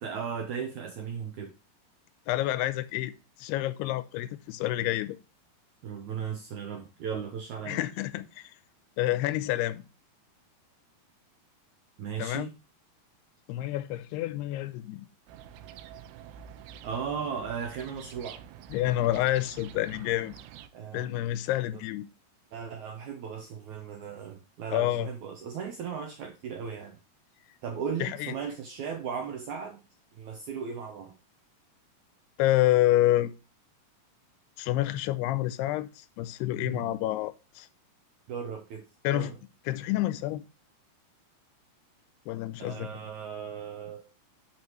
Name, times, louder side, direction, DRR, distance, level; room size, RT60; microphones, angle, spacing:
voice 1, 0.0-1.5 5.8-7.8 12.0-12.5 16.8-18.4 20.7-21.1 21.5-21.8 22.5-27.0 27.6-29.8 30.2-31.1 36.6-37.0 38.3-38.8 39.1-39.4 42.6-44.0, right 7 dB, 75° right, 1.8 m, -36 dB
voice 2, 2.3-3.1 3.4-5.2 7.7-8.5 9.0-9.8 12.2-12.5 13.5-15.1 18.7-20.4 20.9-22.1 24.7-25.1 28.0-28.3 32.4-33.3 34.6-37.7 39.0-39.3 39.7-40.4 42.3-42.9, left 15 dB, 85° left, 2.7 m, -28 dB
sound 1, 15.3-20.7, right 9 dB, 90° right, 2.7 m, -48 dB
10.5 x 4.9 x 3.1 m
omnidirectional pair, 4.7 m